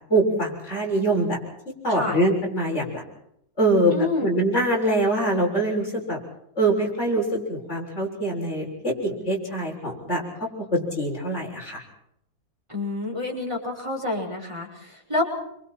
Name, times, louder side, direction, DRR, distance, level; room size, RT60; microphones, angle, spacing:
voice 1, 0.1-1.4 1.7-3.0 3.6-3.9 4.2-6.2 6.6-10.2 10.7-11.8, right 1 dB, 45° left, -1 dB, 7.3 m, -24 dB
voice 2, 3.9-4.3 12.7-15.3, left 2 dB, 15° right, -1 dB, 6.2 m, -28 dB
29.0 x 26.5 x 4.5 m, 0.75 s
omnidirectional pair, 1.7 m